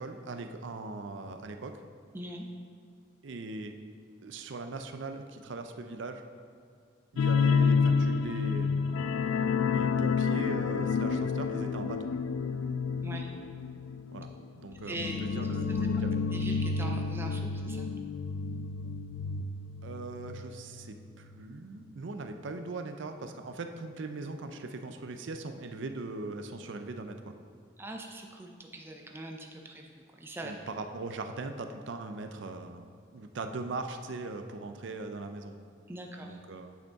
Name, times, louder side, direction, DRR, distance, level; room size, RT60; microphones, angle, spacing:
voice 1, 0.0-1.8 3.2-3.7 4.2-6.2 7.1-9.0 9.7-12.1 14.1-14.3 14.5-16.2 19.8-27.3 30.4-32.9 33.1-35.6 36.2-36.7, right 3 dB, 70° right, 7 dB, 0.5 m, -40 dB
voice 2, 2.1-2.5 13.0-13.3 14.7-15.2 15.7-15.8 16.3-17.9 27.8-29.9 30.2-30.6 35.9-36.4, right 1 dB, 10° right, 1 dB, 0.4 m, -41 dB
sound 1, 7.2-20.4 20.7-20.9 21.3-21.4, left 5 dB, 90° left, 0.3 m, -30 dB
9.2 x 5.1 x 3.6 m, 2.3 s
head